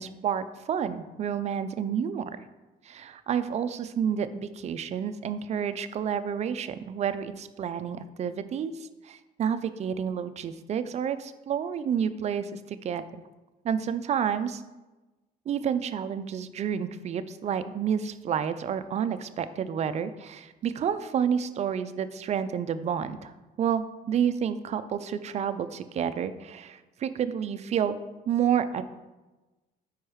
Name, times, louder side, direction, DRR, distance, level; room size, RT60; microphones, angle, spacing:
voice 1, 0.0-2.2 2.9-8.7 9.0-13.2 13.6-14.6 15.5-23.3 23.6-28.0 28.3-28.8, right 8 dB, 40° right, 11 dB, 0.4 m, -29 dB
5.4 x 4.6 x 4.8 m, 1.1 s
cardioid pair, 110°, 17 cm